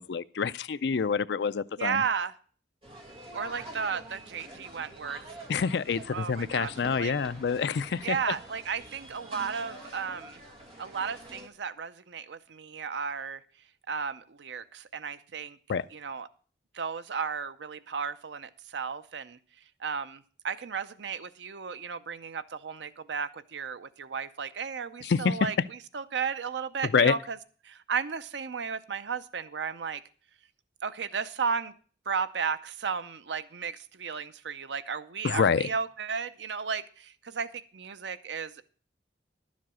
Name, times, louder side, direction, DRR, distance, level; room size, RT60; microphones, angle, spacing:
voice 1, 0.0-2.0 5.5-8.3 15.7-15.9 25.0-25.4 26.8-27.1 35.2-35.7, left 6 dB, 70° left, 0.4 m, -27 dB
voice 2, 1.8-2.3 3.3-5.2 6.1-6.7 7.0-7.1 8.0-10.4 10.8-13.4 13.9-15.6 15.9-16.3 16.7-19.4 19.8-27.4 27.6-30.0 30.8-31.7 32.1-38.6, right 6 dB, 75° right, 0.6 m, -34 dB
sound 1, 2.8-11.5, right 1 dB, 30° right, 2.0 m, -47 dB
11.5 x 7.4 x 6.1 m
head